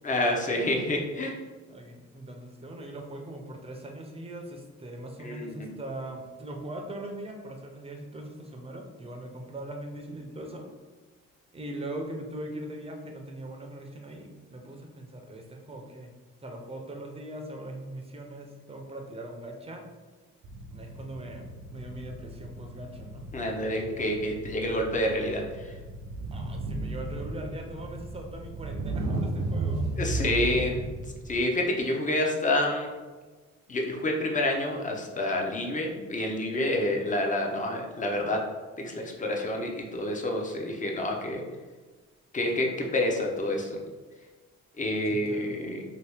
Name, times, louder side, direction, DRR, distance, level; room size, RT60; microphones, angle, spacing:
voice 1, 0.0-1.3 5.2-5.7 23.3-25.8 30.0-30.8 31.3-32.9 33.7-38.4 38.8-41.4 42.3-43.8 44.8-45.8, left 1 dB, 25° left, 1 dB, 0.6 m, -28 dB
voice 2, 1.7-10.7 11.5-16.1 16.4-19.8 20.7-23.3 26.3-29.9 45.1-45.5, right 1 dB, 20° right, 2 dB, 0.6 m, -40 dB
sound 1, 20.4-31.4, right 2 dB, 70° right, 0.6 m, -35 dB
2.8 x 2.7 x 3.4 m, 1.3 s
cardioid pair, 90°, 30 cm